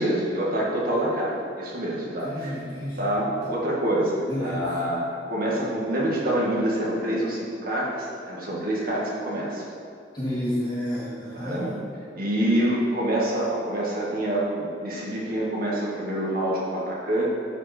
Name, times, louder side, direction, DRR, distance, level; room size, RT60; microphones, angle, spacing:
voice 1, 0.0-2.6 3.0-9.6 11.3-11.7 12.1-17.2, right 1 dB, 50° right, -5 dB, 1.9 m, -26 dB
voice 2, 2.0-3.0 3.4-3.5 4.3-4.6 10.1-11.7, left 1 dB, 20° left, -12 dB, 2.3 m, -30 dB
11.5 x 5.3 x 4.4 m, 2.4 s
head